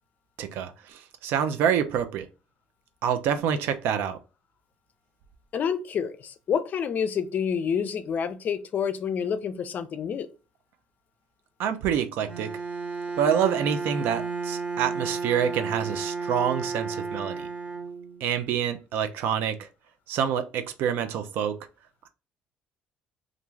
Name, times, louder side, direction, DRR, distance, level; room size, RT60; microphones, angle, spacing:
voice 1, 0.4-2.3 3.0-4.2 11.6-12.5 13.2-17.5 18.2-19.7 20.1-21.6, right 8 dB, 75° right, 0.4 m, -27 dB
voice 2, 5.5-10.3, left 7 dB, 50° left, 0.4 m, -28 dB
Bowed string instrument, 12.2-18.4, right 4 dB, 40° right, 0.8 m, -33 dB
2.5 x 2.3 x 3.1 m
supercardioid pair, 70°, 4 cm